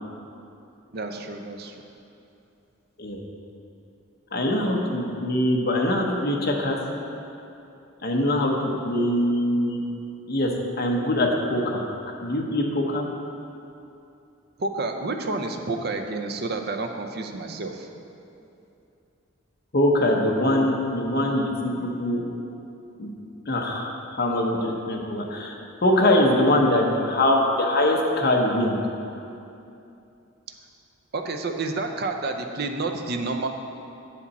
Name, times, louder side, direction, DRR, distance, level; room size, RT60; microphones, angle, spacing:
voice 1, 0.9-1.9 14.6-17.9 31.1-33.5, right 3 dB, 50° right, 5 dB, 0.5 m, -29 dB
voice 2, 4.3-6.8 8.0-8.5 8.8-9.8 10.3-10.5 10.8-11.8 12.2-13.1 19.7-22.2 23.0-23.1 23.5-25.5 25.8-28.8, left 1 dB, 45° left, 0 dB, 0.9 m, -23 dB
8.3 x 6.9 x 4.1 m, 2.7 s
head